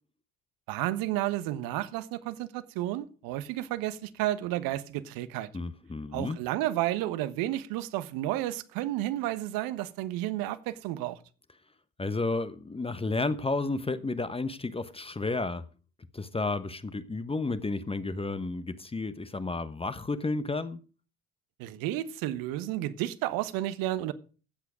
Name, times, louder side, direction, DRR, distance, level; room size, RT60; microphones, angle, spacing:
voice 1, 0.7-5.5 6.1-11.2 21.6-24.1, right 14 dB, 60° right, 1.2 m, -32 dB
voice 2, 5.5-6.4 12.0-15.6 16.1-20.8, left 3 dB, 15° left, 1.1 m, -32 dB
15.0 x 8.2 x 5.0 m
hypercardioid pair, 60°, 40 cm